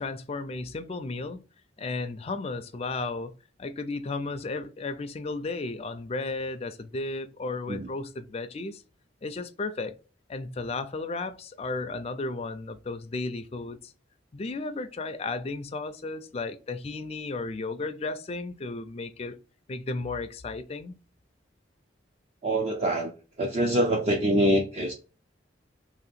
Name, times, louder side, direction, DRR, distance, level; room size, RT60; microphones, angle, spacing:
voice 1, 0.0-1.4 1.8-3.3 3.6-8.8 9.2-9.9 10.3-13.9 14.3-19.4 19.7-21.0, left 3 dB, 35° left, 0.4 m, -34 dB
voice 2, 22.4-23.1 23.4-24.9, right 1 dB, 35° right, 0.5 m, -24 dB
2.9 x 2.8 x 4.1 m
head